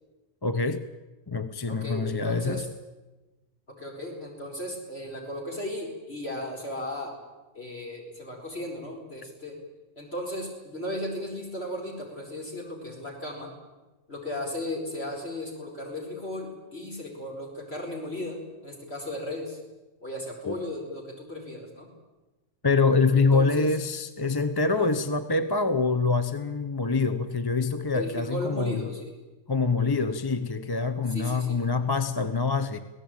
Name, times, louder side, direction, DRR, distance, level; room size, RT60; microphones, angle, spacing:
voice 1, 0.4-0.8 1.3-2.6 20.5-20.6 22.6-28.8 29.5-32.8, left 4 dB, 20° left, 11 dB, 0.8 m, -25 dB
voice 2, 1.7-2.7 3.7-7.1 7.5-9.6 10.0-13.5 14.1-19.6 20.0-21.9 23.1-23.8 24.7-24.9 27.9-29.1 31.1-31.6, left 1 dB, 55° left, 0 dB, 4.8 m, -36 dB
25.5 x 17.5 x 9.0 m, 1.1 s
omnidirectional pair, 1.3 m